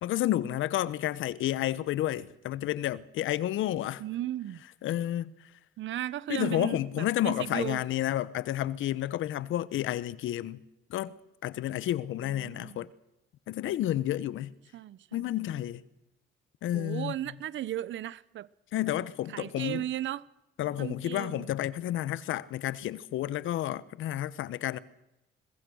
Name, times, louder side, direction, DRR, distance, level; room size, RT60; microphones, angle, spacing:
voice 1, 0.0-4.0 4.8-5.3 6.3-10.6 10.9-11.1 11.4-12.9 13.5-14.5 15.1-15.8 16.6-17.1 18.7-19.8 20.6-24.8, left 13 dB, 80° left, 1.1 m, -30 dB
voice 2, 4.0-4.6 5.8-7.8 12.2-12.9 14.7-15.3 16.7-18.5 19.3-20.2 20.8-21.5, right 13 dB, 70° right, 0.9 m, -36 dB
22.5 x 21.0 x 6.4 m
cardioid pair, 90°, 20 cm